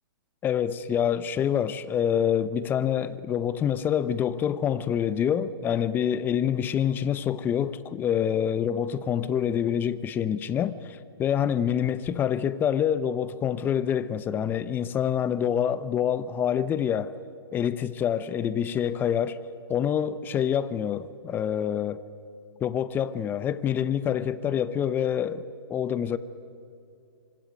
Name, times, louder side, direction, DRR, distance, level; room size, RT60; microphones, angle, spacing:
voice 1, 0.4-17.1 17.5-19.4 19.7-22.0 22.6-26.2, left 9 dB, 15° left, 0.7 m, -26 dB
26.0 x 25.0 x 5.2 m
hypercardioid pair, 145°, 14 cm